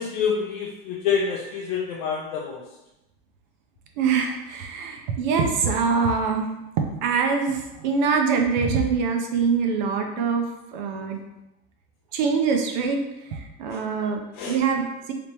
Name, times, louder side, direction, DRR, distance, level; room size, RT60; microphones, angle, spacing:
voice 1, 0.0-2.6 13.7-13.8 14.3-14.6, left 6 dB, 50° left, -3 dB, 0.5 m, -27 dB
voice 2, 4.0-6.5 7.0-11.2 12.1-15.1, right 5 dB, 50° right, 3 dB, 0.5 m, -24 dB
3.4 x 2.8 x 2.9 m, 0.93 s
supercardioid pair, 175°, 30 cm